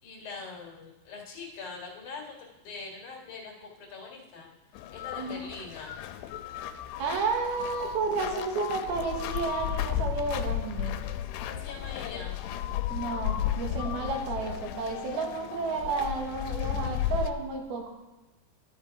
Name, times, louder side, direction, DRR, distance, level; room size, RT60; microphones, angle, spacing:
voice 1, 0.0-2.2 2.6-4.5 4.9-5.9 11.4-12.4, left 4 dB, 60° left, -2 dB, 2.8 m, -42 dB
sound 1, 4.7-17.3, left 11 dB, 90° left, 2.6 m, -34 dB
voice 2, 7.0-11.0 12.9-17.9, right 4 dB, 75° right, 1 dB, 3.3 m, -31 dB
11.5 x 9.4 x 4.6 m, 1.1 s
omnidirectional pair, 4.5 m